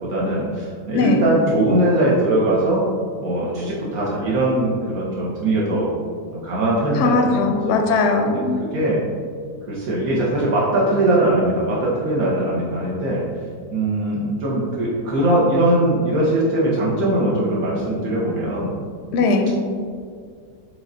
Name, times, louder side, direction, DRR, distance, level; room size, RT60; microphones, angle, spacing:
voice 1, 0.0-2.8 3.2-5.9 6.3-7.8 8.2-8.4 8.7-9.0 9.7-13.2 13.7-18.7, right 1 dB, 75° right, -6 dB, 1.2 m, -21 dB
voice 2, 7.0-8.6 19.1-19.5, left 3 dB, 65° left, 3 dB, 0.7 m, -19 dB
4.9 x 3.7 x 2.6 m, 2.1 s
omnidirectional pair, 1.5 m